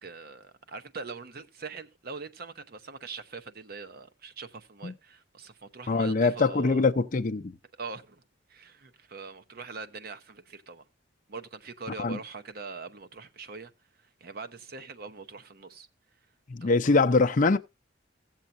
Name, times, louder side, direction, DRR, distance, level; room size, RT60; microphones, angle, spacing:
voice 1, 0.0-6.8 7.8-8.2 8.5-10.8 11.3-13.7 14.0-15.9 16.6-17.0, right 4 dB, 50° right, 0.9 m, -42 dB
voice 2, 5.9-7.5 12.0-12.2 16.5-17.6, left 3 dB, 40° left, 0.5 m, -23 dB
16.0 x 7.4 x 2.6 m
head